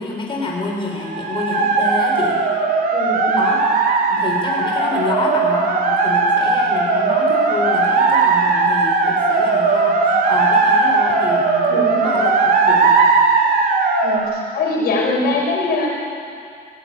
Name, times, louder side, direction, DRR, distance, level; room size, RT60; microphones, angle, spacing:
voice 1, 0.0-2.4 3.4-3.6 4.1-13.0, left 3 dB, 30° left, -1 dB, 4.0 m, -27 dB
sound 1, 1.0-14.2, right 4 dB, 60° right, 3.4 m, -17 dB
voice 2, 2.9-3.5 11.7-12.2 14.0-15.9, left 2 dB, 65° left, -2 dB, 6.0 m, -22 dB
18.5 x 17.5 x 9.3 m, 2.4 s
cardioid pair, 110°, 17 cm